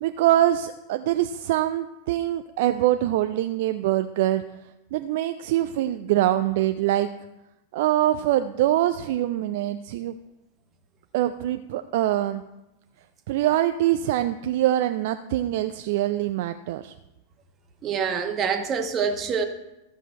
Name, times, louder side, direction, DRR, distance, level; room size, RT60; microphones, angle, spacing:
voice 1, 0.0-4.4 4.9-7.1 7.7-10.2 11.1-12.4 13.3-16.9, right 13 dB, 50° right, 9 dB, 0.4 m, -24 dB
voice 2, 17.8-19.4, right 6 dB, 30° right, 6 dB, 1.1 m, -26 dB
13.0 x 6.2 x 4.3 m, 0.95 s
figure-of-eight pair, 90°, 0 cm